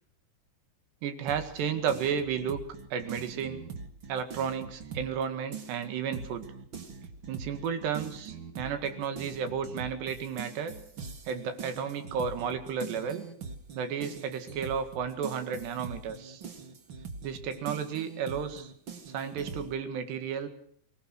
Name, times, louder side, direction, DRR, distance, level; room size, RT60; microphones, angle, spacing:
voice 1, 1.0-2.6 2.9-3.6 4.1-6.5 7.3-10.7 11.3-13.3 13.8-16.4 17.2-18.7 19.1-20.5, right 7 dB, 75° right, 9 dB, 4.0 m, -33 dB
sound 1, 1.3-5.2 5.5-19.7, right 5 dB, 50° right, 1.5 m, -43 dB
24.5 x 18.5 x 6.4 m, 0.63 s
omnidirectional pair, 5.1 m